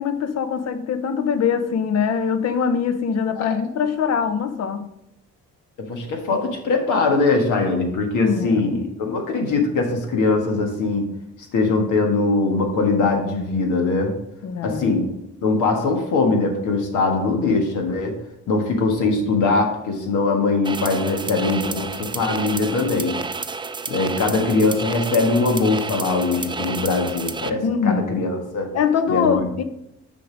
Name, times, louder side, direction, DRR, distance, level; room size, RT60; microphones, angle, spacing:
voice 1, 0.0-4.9 8.2-8.7 14.4-15.0 27.6-28.0 28.7-29.6, left 6 dB, 55° left, 0.8 m, -23 dB
voice 2, 5.8-11.1 11.5-14.2 14.6-15.1 15.4-18.2 18.5-23.2 23.9-28.7 29.1-29.5, left 3 dB, 85° left, 1.6 m, -21 dB
sound 1, 20.6-27.5, right 4 dB, 15° right, 0.4 m, -30 dB
6.6 x 5.2 x 5.0 m
cardioid pair, 90°, 30 cm